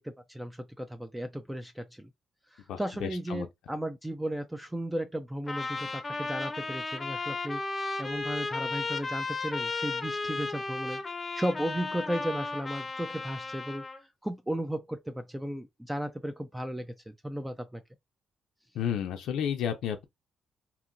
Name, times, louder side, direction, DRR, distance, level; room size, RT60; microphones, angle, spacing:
voice 1, 0.0-2.1 2.5-11.0 11.3-13.8 14.2-17.8, right 1 dB, 10° right, 0.4 m, -35 dB
voice 2, 2.7-3.5 18.7-20.0, left 8 dB, 80° left, 0.4 m, -32 dB
Trumpet, 5.5-14.0, left 3 dB, 25° left, 0.7 m, -34 dB
2.9 x 2.7 x 2.5 m
cardioid pair, 90°, 0 cm